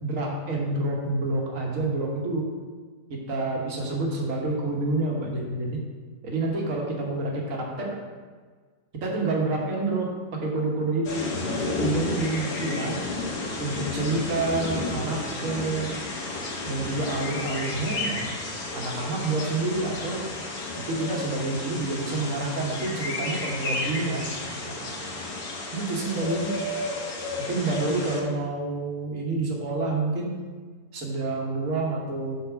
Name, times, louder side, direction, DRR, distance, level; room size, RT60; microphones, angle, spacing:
voice 1, 0.0-2.5 3.1-5.8 6.2-8.0 9.0-13.0 13.6-16.0 16.6-18.3 18.7-20.3 20.8-25.2 25.7-26.5 27.5-30.4 30.9-32.3, right 2 dB, 50° right, -1 dB, 1.5 m, -28 dB
sound 1, 11.0-28.2, left 2 dB, 60° left, 1.7 m, -32 dB
6.9 x 4.2 x 6.0 m, 1.5 s
omnidirectional pair, 2.0 m